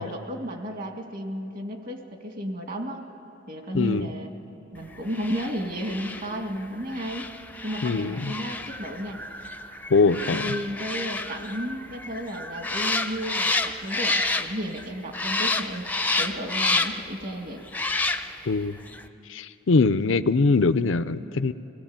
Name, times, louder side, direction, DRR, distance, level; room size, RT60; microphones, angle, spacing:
voice 1, 0.0-3.1 3.5-4.3 4.7-7.3 7.6-9.2 10.0-17.6, equal, 45° right, 4 dB, 2.3 m, -33 dB
voice 2, 3.7-4.1 7.8-8.3 9.9-10.5 18.5-18.7 19.3-21.5, left 4 dB, 70° left, 13 dB, 0.6 m, -22 dB
sound 1, 5.1-14.8 15.1-17.1 17.7-18.5 18.9-19.0, left 2 dB, 10° left, 0.6 m, -29 dB
25.5 x 19.0 x 8.9 m, 2.9 s
head